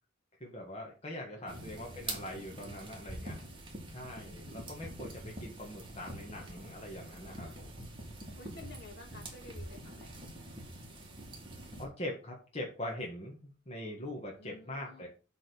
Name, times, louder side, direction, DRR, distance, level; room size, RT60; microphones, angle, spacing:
voice 1, 0.4-3.4 3.9-7.7 11.8-15.1, left 1 dB, 30° left, -1 dB, 1.7 m, -42 dB
voice 2, 1.3-1.7 7.4-7.5 7.8-8.0 8.4-10.3 14.4-15.0, left 3 dB, 55° left, 1 dB, 2.5 m, -53 dB
sound 1, 1.5-11.9, right 2 dB, 25° right, 2.3 m, -45 dB
7.9 x 4.0 x 6.9 m, 0.36 s
head